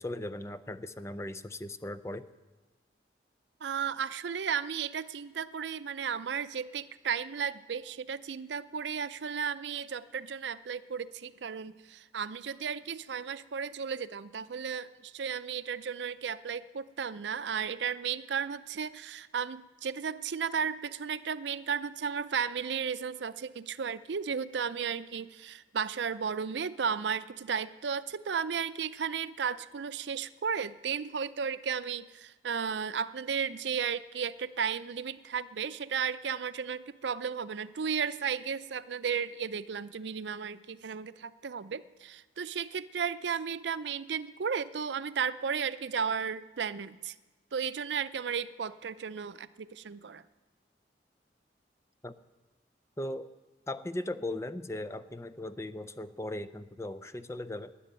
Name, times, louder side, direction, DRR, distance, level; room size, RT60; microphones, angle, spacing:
voice 1, 0.0-2.2 52.0-52.1 53.0-53.3 53.7-57.7, left 1 dB, 15° left, 11 dB, 0.5 m, -38 dB
voice 2, 3.6-47.1 47.5-50.2, right 6 dB, 85° right, 15 dB, 0.5 m, -34 dB
13.0 x 10.0 x 9.4 m, 1.3 s
head